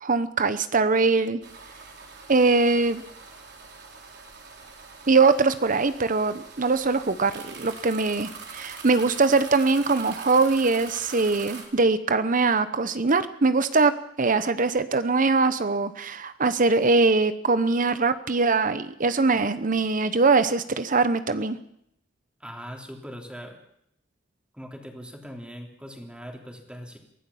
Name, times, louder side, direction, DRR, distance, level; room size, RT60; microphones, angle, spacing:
voice 1, 0.0-1.4 2.3-3.0 5.1-21.6, right 3 dB, 45° right, 12 dB, 0.9 m, -22 dB
sound 1, 1.4-11.6, right 5 dB, 60° right, 4.2 m, -43 dB
voice 2, 22.4-23.6 24.5-27.0, equal, 5° right, 2 dB, 3.3 m, -40 dB
23.0 x 16.0 x 7.1 m, 0.73 s
head